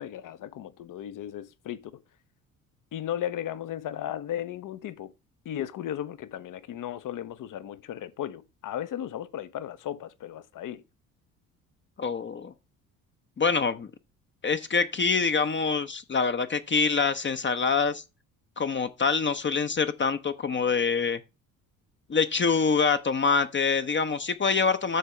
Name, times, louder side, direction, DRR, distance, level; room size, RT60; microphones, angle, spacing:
voice 1, 0.0-2.0 2.9-5.1 5.4-10.8, left 11 dB, 50° left, 0.9 m, -35 dB
voice 2, 12.0-12.5 13.4-13.9 14.4-18.0 18.6-21.2 22.1-25.0, left 5 dB, 25° left, 0.8 m, -25 dB
13.0 x 4.5 x 3.3 m
hypercardioid pair, 55°, 42 cm